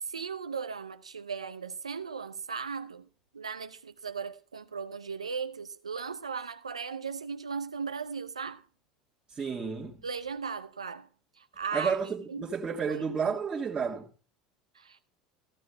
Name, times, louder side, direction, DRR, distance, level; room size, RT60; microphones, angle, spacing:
voice 1, 0.0-3.1 3.3-8.6 10.0-11.1 11.4-12.5 12.9-13.0 14.7-15.0, right 5 dB, 90° right, 0.5 m, -37 dB
voice 2, 9.3-10.0 11.7-14.1, right 6 dB, 25° right, 1.5 m, -31 dB
14.5 x 14.0 x 2.2 m
hypercardioid pair, 75°, 3 cm